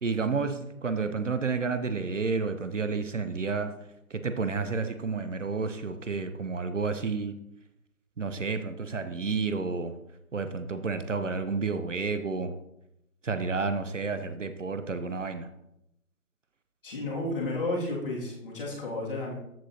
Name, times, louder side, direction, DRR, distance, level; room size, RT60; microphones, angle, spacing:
voice 1, 0.0-3.7 4.1-7.4 8.2-10.0 10.3-12.5 13.2-15.5, right 4 dB, 60° right, 10 dB, 0.8 m, -30 dB
voice 2, 16.8-19.3, left 2 dB, 40° left, -3 dB, 2.3 m, -32 dB
13.5 x 4.9 x 2.8 m, 0.82 s
figure-of-eight pair, 160°, 43 cm